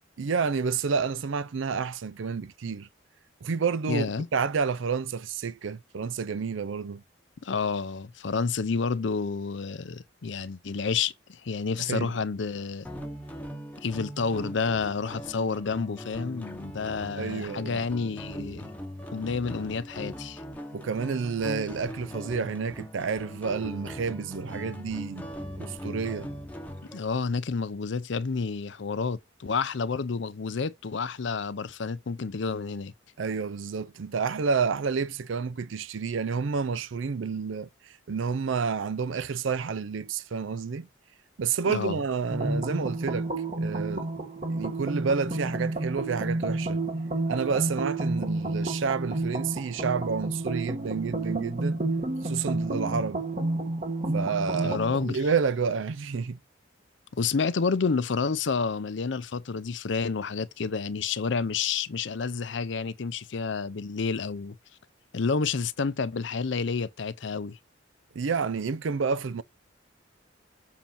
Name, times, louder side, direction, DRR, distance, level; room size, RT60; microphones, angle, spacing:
voice 1, 0.2-2.9 3.4-4.1 4.3-7.0 11.8-12.1 17.1-17.8 20.7-25.3 25.6-26.3 33.2-37.7 38.1-40.9 41.4-43.3 43.6-44.1 44.5-46.8 47.3-51.8 52.2-53.2 54.1-56.4 68.1-69.4, right 5 dB, 75° right, 0.5 m, -29 dB
voice 2, 3.9-4.3 7.4-12.9 13.8-18.7 19.1-20.4 26.9-32.9 41.7-42.0 54.6-55.2 57.1-64.6 65.1-67.6, left 5 dB, 65° left, 0.5 m, -29 dB
sound 1, 12.8-27.0, equal, 10° left, 0.9 m, -40 dB
sound 2, 42.3-55.1, right 2 dB, 35° right, 1.3 m, -30 dB
7.3 x 2.8 x 5.7 m
head